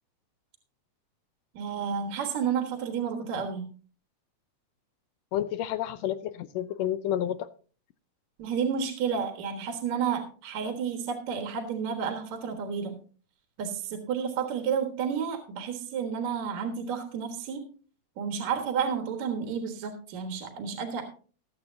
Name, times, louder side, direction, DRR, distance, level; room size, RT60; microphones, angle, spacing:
voice 1, 1.5-3.6 8.4-13.0 13.6-17.6 18.2-21.0, right 7 dB, 75° right, 2.7 m, -31 dB
voice 2, 5.3-7.5, left 11 dB, 75° left, 1.8 m, -30 dB
20.0 x 8.2 x 2.7 m
omnidirectional pair, 3.3 m